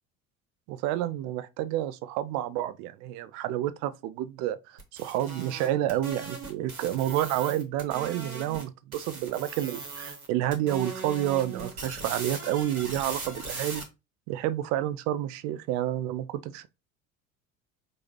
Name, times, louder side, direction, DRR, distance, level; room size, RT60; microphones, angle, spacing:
voice 1, 0.7-13.9 14.3-16.7, right 12 dB, 40° right, 0.4 m, -29 dB
sound 1, 4.8-8.6 8.9-10.3 10.5-13.8, right 3 dB, 80° right, 1.1 m, -39 dB
4.8 x 2.6 x 3.1 m
figure-of-eight pair, 60°, 42 cm